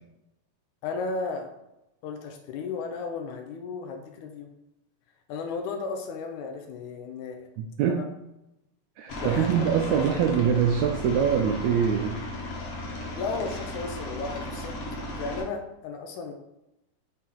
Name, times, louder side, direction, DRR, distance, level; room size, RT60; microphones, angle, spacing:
voice 1, 0.8-1.5 2.0-4.5 5.3-7.5 7.9-8.0 9.2-10.0 10.3-10.5 13.2-14.8 15.2-16.3, left 4 dB, 80° left, 4 dB, 2.0 m, -34 dB
voice 2, 7.6-8.1 9.0-12.2, right 8 dB, 85° right, 3 dB, 1.6 m, -24 dB
Aircraft, 9.1-15.4, left 1 dB, 60° left, 1.9 m, -35 dB
5.9 x 4.3 x 3.7 m, 0.89 s
omnidirectional pair, 3.7 m